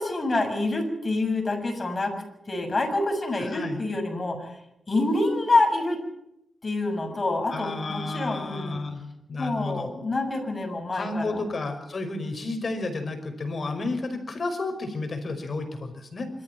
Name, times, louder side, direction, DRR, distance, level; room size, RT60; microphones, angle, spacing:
voice 1, 0.0-4.6 4.9-6.0 6.6-8.8 9.4-11.4, left 2 dB, 35° left, 4 dB, 6.8 m, -27 dB
voice 2, 3.5-3.8 7.5-9.9 10.9-16.3, left 3 dB, 50° left, 7 dB, 5.3 m, -32 dB
25.5 x 14.0 x 9.3 m, 0.82 s
wide cardioid pair, 90°, 0 cm